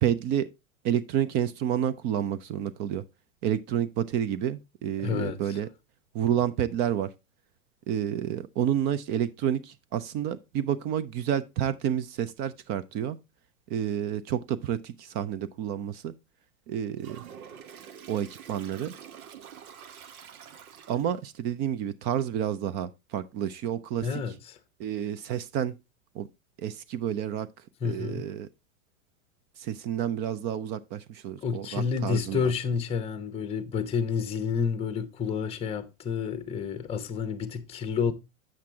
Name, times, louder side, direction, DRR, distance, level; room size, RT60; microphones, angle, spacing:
voice 1, 0.0-0.5 0.8-3.0 3.4-5.7 6.1-7.1 7.9-13.2 13.7-16.1 16.7-17.2 18.1-18.9 20.9-24.1 24.8-25.7 26.2-26.3 26.6-27.5 27.8-28.5 29.6-32.5, right 10 dB, 25° right, 0.4 m, -29 dB
voice 2, 5.0-5.6 24.0-24.6 27.8-28.3 31.4-38.1, left 6 dB, 15° left, 0.8 m, -30 dB
Toilet flush, 17.0-21.3, right 8 dB, 85° right, 0.9 m, -47 dB
7.7 x 5.9 x 3.4 m
hypercardioid pair, 125°, 42 cm